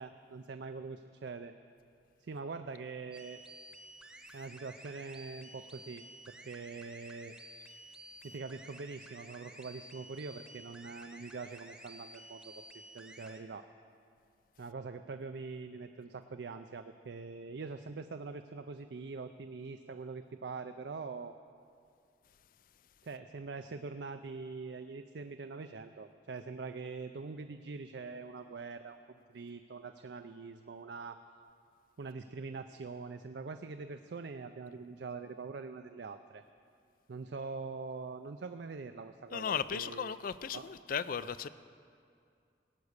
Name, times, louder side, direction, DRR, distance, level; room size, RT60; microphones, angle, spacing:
voice 1, 0.0-1.5 2.2-3.4 4.3-7.3 8.2-12.7 12.9-13.7 14.6-21.3 23.0-31.2 32.0-36.4 37.1-40.2 40.5-40.6, right 4 dB, 70° right, 0.5 m, -43 dB
sound 1, 3.1-13.4, right 1 dB, 5° right, 0.9 m, -53 dB
voice 2, 39.3-41.5, left 7 dB, 50° left, 0.4 m, -36 dB
18.0 x 8.4 x 6.6 m
head